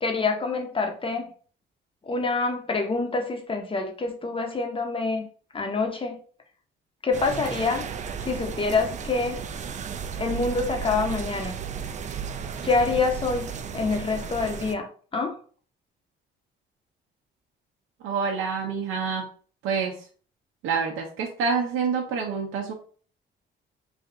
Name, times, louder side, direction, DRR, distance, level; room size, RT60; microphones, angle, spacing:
voice 1, 0.0-1.3 2.1-5.2 5.5-6.2 7.0-7.8 8.2-9.4 10.2-11.6 12.6-14.9 15.1-15.4, left 3 dB, 25° left, 4 dB, 0.8 m, -26 dB
sound 1, 7.1-14.8, right 7 dB, 35° right, 0.4 m, -34 dB
voice 2, 18.0-19.2 19.6-19.9 20.6-22.7, right 5 dB, 90° right, 0 dB, 0.6 m, -27 dB
3.3 x 2.4 x 3.8 m, 0.43 s
cardioid pair, 90°, 20 cm